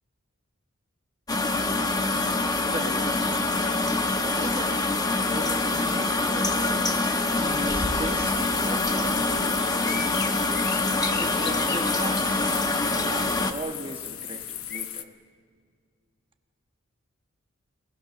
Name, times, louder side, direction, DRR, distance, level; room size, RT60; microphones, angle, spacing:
sound 1, 1.3-13.5, left 2 dB, 20° left, 1.0 m, -25 dB
voice 1, 2.7-3.4 4.2-6.9 7.3-9.3 11.2-15.1, right 2 dB, 25° right, 5 dB, 1.3 m, -37 dB
sound 2, 7.3-14.8, left 4 dB, 50° left, 1.4 m, -39 dB
sound 3, 8.2-15.0, left 12 dB, 80° left, 1.0 m, -36 dB
28.5 x 19.0 x 6.6 m, 2.1 s
head